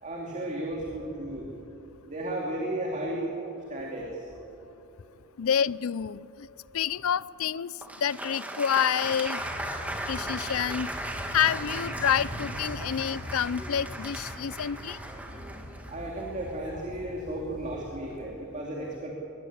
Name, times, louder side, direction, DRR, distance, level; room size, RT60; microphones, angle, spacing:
voice 1, 0.0-1.5 2.1-4.3 15.8-19.1, right 1 dB, 35° right, -2 dB, 2.9 m, -34 dB
voice 2, 5.4-6.5 6.7-9.4 10.1-10.9 11.3-15.0, left 8 dB, 65° left, 20 dB, 0.5 m, -28 dB
Applause, 7.8-16.7, right 1 dB, 5° right, 2.0 m, -37 dB
sound 1, 9.4-18.3, equal, 45° left, 6.8 m, -42 dB
21.5 x 20.5 x 8.6 m, 2.9 s
head